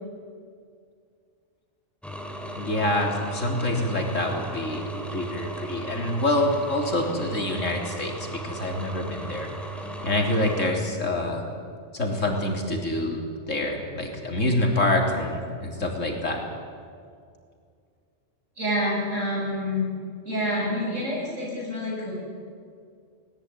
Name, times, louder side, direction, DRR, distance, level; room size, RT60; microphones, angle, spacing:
sound 1, 2.0-10.7, right 2 dB, ahead, 2.9 m, -36 dB
voice 1, 2.6-8.1 8.4-9.5 10.0-11.4 11.9-13.2 13.5-16.4, left 1 dB, 90° left, 1 dB, 3.8 m, -26 dB
voice 2, 18.6-19.9 20.2-22.1, left 1 dB, 80° right, -2 dB, 7.9 m, -27 dB
19.5 x 19.0 x 9.8 m, 2.2 s
omnidirectional pair, 1.3 m